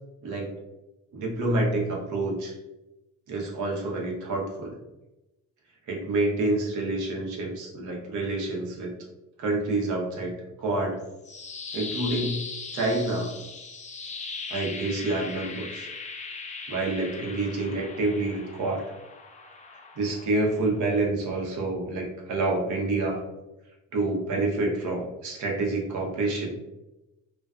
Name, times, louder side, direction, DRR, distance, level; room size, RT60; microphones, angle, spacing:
voice 1, 0.2-0.6 1.1-2.6 3.3-4.8 5.9-8.9 9.4-10.3 10.6-11.0 11.7-12.4 12.7-13.3 14.5-15.9 16.7-18.9 20.0-23.2 23.9-26.6, right 2 dB, 75° right, -2 dB, 0.8 m, -28 dB
sound 1, 11.0-21.1, left 4 dB, 25° left, 0.4 m, -39 dB
2.4 x 2.3 x 2.3 m, 0.98 s
cardioid pair, 90°, 30 cm